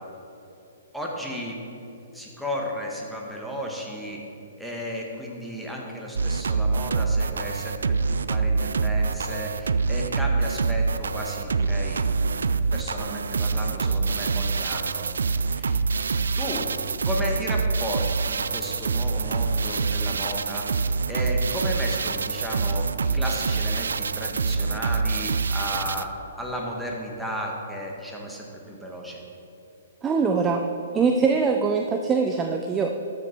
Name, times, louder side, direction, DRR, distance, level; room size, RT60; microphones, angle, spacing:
voice 1, 0.9-1.6 2.1-4.2 4.6-12.0 12.7-15.1 15.5-15.8 16.4-16.7 17.0-20.7 21.1-29.2, equal, ahead, -2 dB, 1.6 m, -34 dB
sound 1, 6.2-26.1, right 4 dB, 75° right, 0.3 m, -25 dB
voice 2, 30.0-30.6 30.9-33.0, right 5 dB, 20° right, 3 dB, 0.6 m, -22 dB
13.0 x 6.9 x 4.5 m, 2.9 s
figure-of-eight pair, 125°, 0 cm